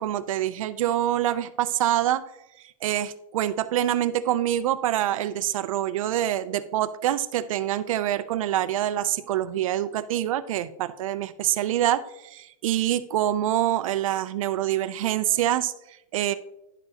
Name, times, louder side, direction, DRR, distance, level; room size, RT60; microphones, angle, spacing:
voice 1, 0.0-2.2 2.8-16.3, right 12 dB, 75° right, 12 dB, 0.5 m, -26 dB
9.8 x 6.9 x 2.8 m, 0.86 s
supercardioid pair, 165°, 18 cm